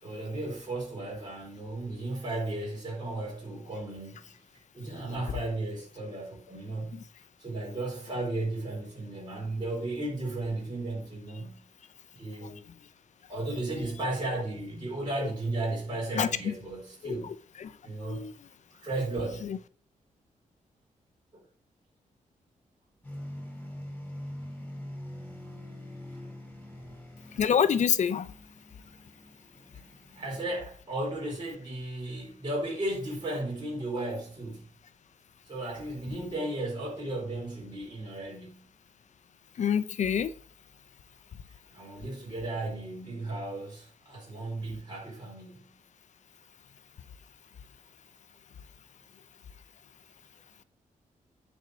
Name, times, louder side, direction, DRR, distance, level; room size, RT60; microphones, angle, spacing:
voice 1, 0.0-4.4 4.7-7.0 7.4-11.6 12.1-12.7 13.3-17.3 17.8-18.2 18.7-19.6 21.3-21.4 26.7-27.0 30.1-34.7 35.5-38.7 41.7-45.7, right 2 dB, 35° right, 4.3 m, -35 dB
voice 2, 16.1-16.5 17.0-17.1 17.6-17.7 18.1-18.3 19.4-19.6 27.4-28.3 39.6-40.3, left 8 dB, 60° left, 0.6 m, -26 dB
sound 1, 23.0-30.6, left 1 dB, 10° left, 3.1 m, -44 dB
9.6 x 4.5 x 6.2 m
wide cardioid pair, 130°, 14 cm